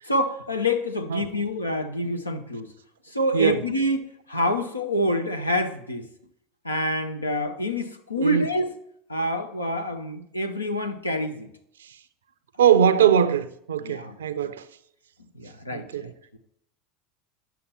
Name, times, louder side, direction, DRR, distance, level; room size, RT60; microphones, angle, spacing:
voice 1, 0.1-2.7 3.1-4.0 4.3-6.1 6.6-8.7 9.1-11.5 13.8-14.5 15.4-15.9, left 1 dB, 85° left, 0.8 m, -27 dB
voice 2, 3.3-3.6 8.2-8.5 12.6-14.7 15.7-16.1, right 8 dB, 70° right, 0.5 m, -21 dB
10.5 x 6.9 x 4.3 m
figure-of-eight pair, 75°, 0 cm